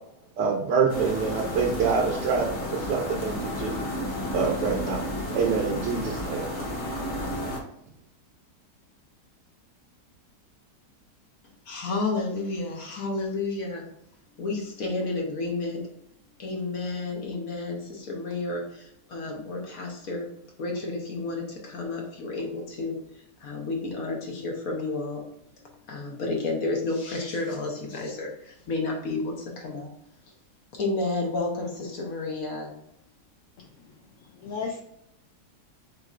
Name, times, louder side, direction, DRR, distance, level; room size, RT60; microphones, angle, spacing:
voice 1, 0.4-3.8 4.3-5.0 5.3-6.5, right 5 dB, 80° right, -1 dB, 1.3 m, -26 dB
sound 1, 0.9-7.6, left 1 dB, 40° left, 0.7 m, -32 dB
voice 2, 11.7-13.9 14.4-15.8 16.4-20.3 20.6-23.0 23.4-25.2 25.6-29.9 30.7-32.8, left 3 dB, 55° left, 0 dB, 1.3 m, -31 dB
voice 3, 33.6-34.0 34.3-34.8, left 5 dB, 75° left, 1 dB, 0.7 m, -35 dB
7.3 x 2.8 x 2.4 m, 0.75 s
omnidirectional pair, 1.9 m